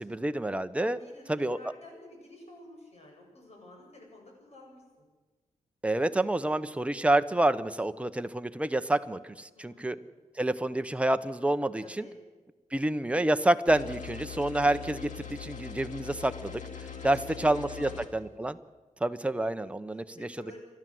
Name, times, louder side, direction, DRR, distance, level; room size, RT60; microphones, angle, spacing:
voice 1, 0.0-1.0 1.3-1.6 5.8-10.0 10.3-12.0 12.7-18.6 19.0-20.3, right 1 dB, 10° right, 10 dB, 0.9 m, -28 dB
voice 2, 0.8-5.0 9.5-10.2 11.8-12.2 16.9-18.3 19.9-20.6, left 1 dB, 55° left, 1 dB, 8.0 m, -51 dB
sound 1, 13.7-18.1, left 7 dB, 85° left, 2.3 m, -42 dB
29.5 x 12.5 x 7.8 m, 1.2 s
wide cardioid pair, 110°, 13 cm